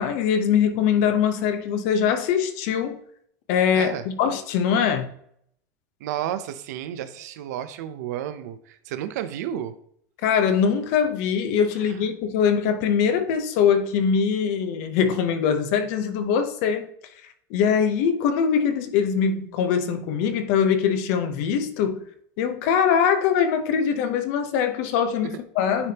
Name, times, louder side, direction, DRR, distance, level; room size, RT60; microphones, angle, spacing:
voice 1, 0.0-3.0 3.5-5.1 10.2-16.9 17.5-22.0 22.4-25.9, left 7 dB, 65° left, 0.9 m, -22 dB
voice 2, 3.7-4.0 6.0-9.7 11.9-12.0 25.2-25.4, right 11 dB, 85° right, 0.6 m, -32 dB
9.7 x 3.5 x 2.9 m
supercardioid pair, 145°, 9 cm